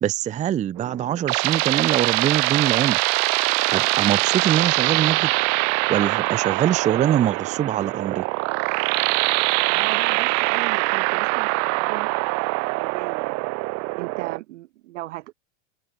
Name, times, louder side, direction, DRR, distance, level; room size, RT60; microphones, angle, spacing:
voice 1, 0.0-3.0 3.7-5.3 5.9-8.2, right 10 dB, 20° right, 0.6 m, -23 dB
sound 1, 0.8-14.4, right 30 dB, 45° right, 1.1 m, -23 dB
voice 2, 9.7-12.1 12.7-13.6 14.0-15.3, right 17 dB, 70° right, 3.8 m, -36 dB
hypercardioid pair, 125°, 38 cm